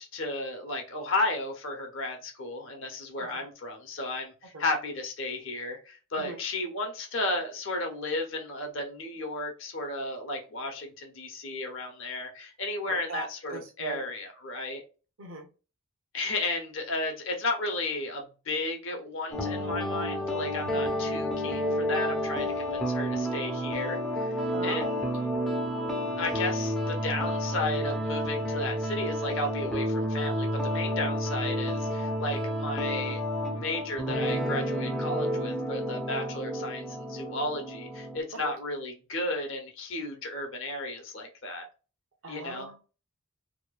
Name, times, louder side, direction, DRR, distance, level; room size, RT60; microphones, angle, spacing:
voice 1, 0.0-14.8 16.1-24.3 24.6-25.0 26.2-41.7 42.3-42.7, left 2 dB, 60° left, 0.8 m, -34 dB
voice 2, 12.9-14.0 15.2-15.5 24.5-25.0 25.2-25.3 38.3-38.5 42.2-42.8, right 3 dB, 70° right, 0.8 m, -40 dB
sound 1, 19.3-38.2, equal, ahead, 0.5 m, -30 dB
2.9 x 2.1 x 2.3 m
head